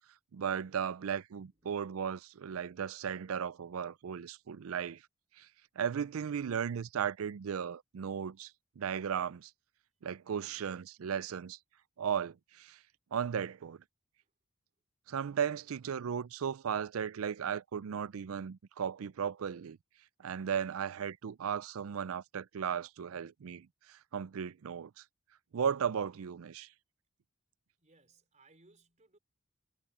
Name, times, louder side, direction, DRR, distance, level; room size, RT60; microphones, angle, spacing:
voice 1, 0.3-5.0 5.4-5.5 5.8-8.5 8.8-9.5 10.0-11.6 12.0-12.8 13.1-13.8 15.1-19.8 20.2-25.0 25.5-26.7, right 7 dB, 75° right, 0.4 m, -36 dB
voice 2, 1.5-2.0 10.0-10.1 14.2-14.3 27.8-29.2, right 3 dB, 35° right, 3.9 m, -65 dB
head